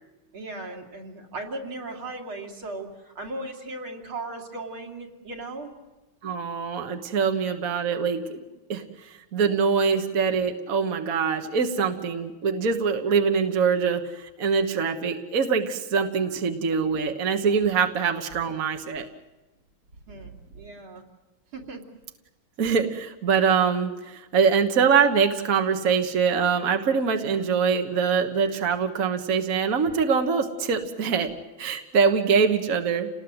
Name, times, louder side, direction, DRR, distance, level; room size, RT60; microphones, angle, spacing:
voice 1, 0.3-5.7 20.1-21.0 21.5-21.8, right 2 dB, 80° right, 1 dB, 3.8 m, -37 dB
voice 2, 6.2-8.4 8.7-19.1 22.6-31.3 31.6-33.1, right 6 dB, 45° right, 5 dB, 1.7 m, -24 dB
29.0 x 19.5 x 8.0 m, 1.1 s
omnidirectional pair, 2.3 m